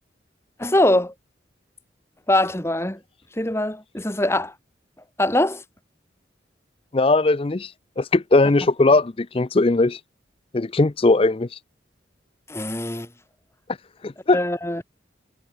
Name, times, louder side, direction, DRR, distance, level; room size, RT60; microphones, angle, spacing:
voice 1, 0.6-1.1 2.3-3.0 3.4-4.5 5.2-5.6 12.5-13.1 14.3-14.8, left 1 dB, 15° left, 1.9 m, -22 dB
voice 2, 6.9-7.7 8.0-10.0 10.5-11.5 14.0-14.4, left 2 dB, 30° left, 0.5 m, -19 dB
head